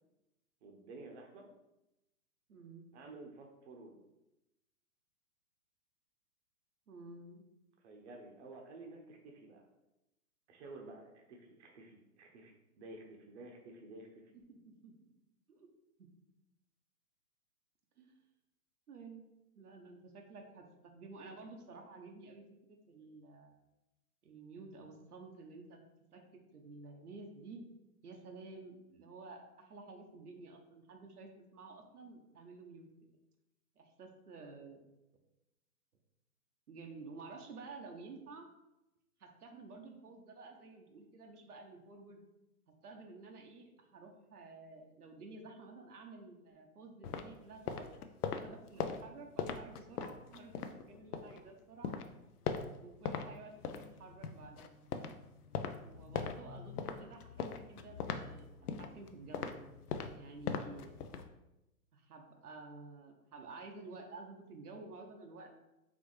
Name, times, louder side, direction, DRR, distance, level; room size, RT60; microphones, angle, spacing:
voice 1, 0.6-1.4 2.9-4.0 7.8-9.7 10.5-14.3, right 2 dB, 50° right, 2 dB, 0.9 m, -52 dB
voice 2, 2.5-2.9 6.9-7.4 14.3-14.4 14.8-15.1 15.5-15.7 16.0-16.1 18.0-18.1 18.9-19.3 19.6-23.6 24.2-25.8 26.1-26.2 26.5-27.6 28.0-32.9 33.8-34.8 36.7-38.5 39.2-42.2 42.8-47.9 48.3-52.0 52.8-54.8 55.8-58.5 58.8-59.6 60.1-61.2 61.9-65.5, right 3 dB, 85° right, 2 dB, 0.9 m, -52 dB
sound 1, 47.0-51.4 51.8-53.3 53.6-61.3, left 6 dB, 90° left, 0.6 m, -41 dB
4.2 x 3.2 x 3.2 m, 0.93 s
hypercardioid pair, 140°, 44 cm